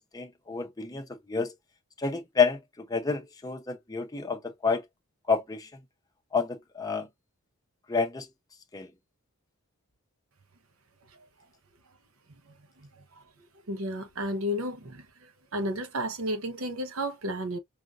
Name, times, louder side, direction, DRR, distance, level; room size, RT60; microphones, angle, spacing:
voice 1, 0.1-1.5 2.0-4.8 5.3-5.7 6.3-7.1 7.9-8.3 8.7-8.9, left 5 dB, 15° left, 0.7 m, -29 dB
voice 2, 13.7-15.0 15.5-17.6, equal, 65° right, 0.9 m, -32 dB
4.9 x 2.6 x 2.4 m
head